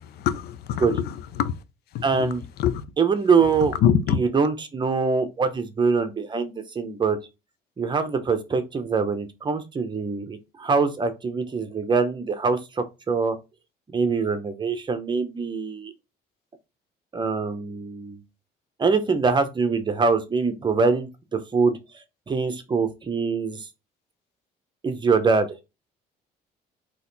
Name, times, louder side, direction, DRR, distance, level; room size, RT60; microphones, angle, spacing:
voice 1, 0.0-1.6 1.9-2.3 2.6-2.8 3.8-4.2, left 9 dB, 70° left, 0.6 m, -24 dB
voice 2, 2.0-2.5 3.0-3.8 4.1-7.2 7.8-13.4 13.9-15.9 17.1-18.2 18.8-21.8 22.3-23.7 24.8-25.5, right 4 dB, 25° right, 0.9 m, -24 dB
4.1 x 3.0 x 4.0 m
cardioid pair, 110°, 17 cm